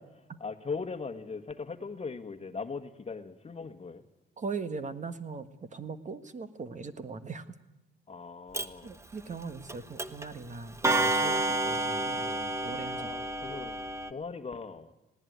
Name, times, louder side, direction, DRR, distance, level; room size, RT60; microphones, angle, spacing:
voice 1, 0.0-4.0 8.1-8.9 13.0-13.8 14.1-14.9, left 4 dB, 30° left, 9 dB, 1.5 m, -39 dB
voice 2, 4.4-7.6 8.8-13.2, right 4 dB, 40° right, 11 dB, 1.5 m, -40 dB
Clock, 8.5-8.7 9.7-9.8 10.0-10.3 10.8-14.1, right 2 dB, 15° right, 1.1 m, -29 dB
19.5 x 17.5 x 9.4 m, 0.98 s
cardioid pair, 90°, 20 cm